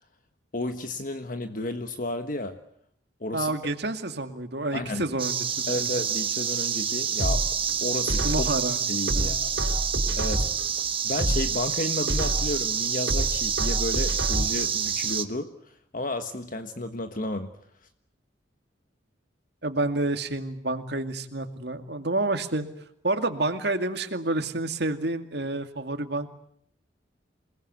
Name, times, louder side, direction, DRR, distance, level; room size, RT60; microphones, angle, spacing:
voice 1, 0.5-2.6 3.2-3.5 4.7-5.0 5.7-7.4 7.8-8.5 8.9-9.5 10.1-10.5 11.0-15.5 15.9-17.5, left 2 dB, 45° left, 8 dB, 1.4 m, -32 dB
voice 2, 3.3-5.9 8.2-8.8 9.1-9.3 19.6-22.6 23.0-26.3, right 2 dB, 60° right, 7 dB, 2.4 m, -29 dB
sound 1, 5.2-15.2, right 8 dB, 30° right, 1.3 m, -28 dB
sound 2, 7.2-8.6 9.1-10.7 11.1-12.6 13.1-14.7 15.1-15.2, right 1 dB, 80° right, 3.9 m, -28 dB
28.5 x 19.5 x 9.6 m, 0.69 s
head